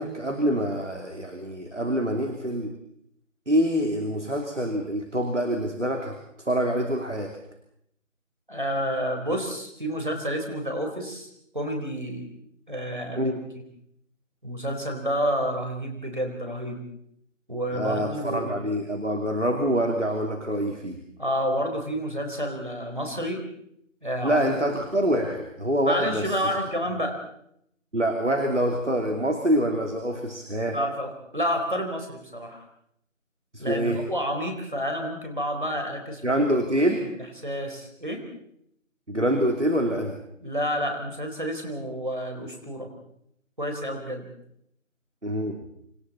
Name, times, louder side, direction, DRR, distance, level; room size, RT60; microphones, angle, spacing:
voice 1, 0.0-2.7 3.5-6.2 6.5-7.4 13.2-13.3 17.7-21.0 24.2-26.3 27.9-30.8 33.5-34.0 36.2-37.1 39.1-40.2 45.2-45.6, equal, 65° right, 4 dB, 3.0 m, -25 dB
voice 2, 8.5-12.3 12.7-13.3 14.4-16.9 17.5-18.6 21.2-23.5 24.0-24.6 25.8-27.2 30.7-32.6 33.6-36.2 36.8-38.2 40.4-42.9 43.6-44.3, equal, 40° right, 3 dB, 4.2 m, -29 dB
27.5 x 27.0 x 4.2 m, 0.72 s
figure-of-eight pair, 180°, 39 cm